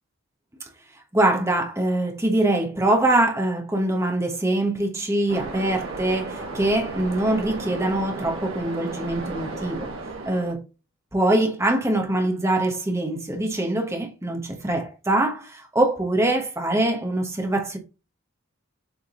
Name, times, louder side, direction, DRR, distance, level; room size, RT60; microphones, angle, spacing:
voice 1, 1.1-9.9 10.3-10.6 11.1-17.8, right 1 dB, 10° right, 1.1 m, -23 dB
Waves surf, 5.3-10.5, right 2 dB, 65° right, 1.6 m, -34 dB
7.2 x 3.7 x 3.8 m
head